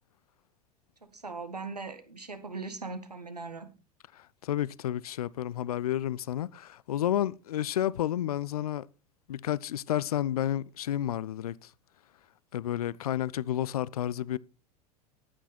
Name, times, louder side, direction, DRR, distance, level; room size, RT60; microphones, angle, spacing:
voice 1, 1.0-3.7, right 4 dB, 85° right, 1.7 m, -39 dB
voice 2, 4.4-8.9 9.3-11.5 12.5-14.4, left 11 dB, 70° left, 0.5 m, -31 dB
13.5 x 9.1 x 4.3 m
figure-of-eight pair, 85°, 20 cm